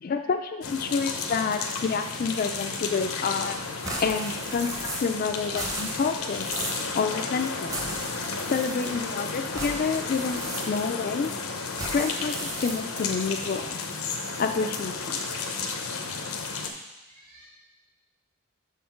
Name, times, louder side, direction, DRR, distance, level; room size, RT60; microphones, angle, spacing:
voice 1, 0.0-3.6 4.0-6.5 6.9-7.7 8.5-11.3 11.9-13.8 14.4-15.2, left 5 dB, 45° left, 6 dB, 0.3 m, -28 dB
sound 1, 0.6-16.7, left 4 dB, 80° left, 0.7 m, -33 dB
sound 2, 3.8-5.2 5.4-6.9 7.7-9.1 9.5-11.0 11.7-13.2, right 1 dB, 15° right, 0.8 m, -36 dB
voice 2, 17.0-17.5, right 1 dB, 45° right, -4 dB, 1.9 m, -55 dB
6.4 x 3.8 x 5.7 m, 1.0 s
head